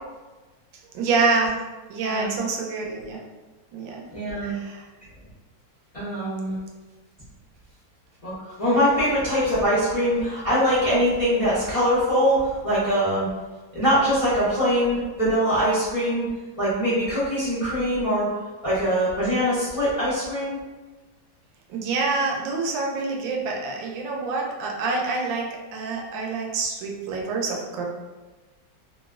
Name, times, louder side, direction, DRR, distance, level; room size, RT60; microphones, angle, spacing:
voice 1, 0.9-1.5 1.9-3.2 3.7-4.1 4.4-4.8 21.7-27.9, right 3 dB, 80° right, 0 dB, 1.3 m, -26 dB
voice 2, 4.1-4.6 5.9-6.6 8.2-13.3 13.7-16.3 16.6-18.3 18.6-20.6, equal, 45° left, -12 dB, 0.4 m, -23 dB
3.0 x 2.8 x 2.3 m, 1.2 s
omnidirectional pair, 2.1 m